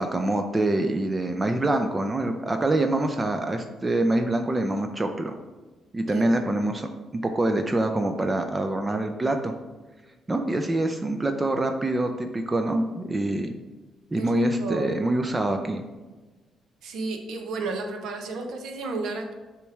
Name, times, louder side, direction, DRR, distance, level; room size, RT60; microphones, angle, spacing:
voice 1, 0.0-5.3 5.9-9.5 10.3-13.5 14.1-15.8, right 1 dB, 25° right, 5 dB, 0.5 m, -25 dB
voice 2, 14.2-15.0 16.8-19.3, right 3 dB, 80° right, 4 dB, 0.9 m, -32 dB
6.8 x 3.1 x 4.6 m, 1.2 s
cardioid pair, 90°, 0 cm